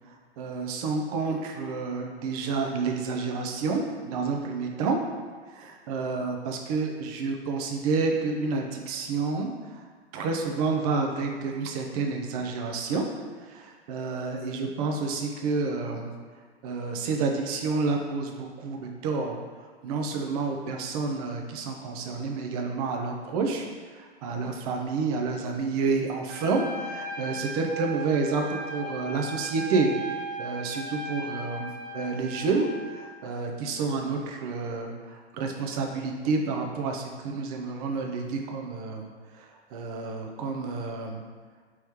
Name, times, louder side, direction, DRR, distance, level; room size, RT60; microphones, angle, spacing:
voice 1, 0.4-5.0 5.6-9.8 10.1-13.1 13.5-16.1 16.6-19.4 19.8-23.7 23.9-29.9 30.4-39.1 39.4-41.2, right 4 dB, 35° right, 2 dB, 0.5 m, -29 dB
Trumpet, 26.3-33.0, right 1 dB, 85° right, 0.8 m, -37 dB
3.1 x 3.0 x 3.5 m, 1.5 s
figure-of-eight pair, 110°, 33 cm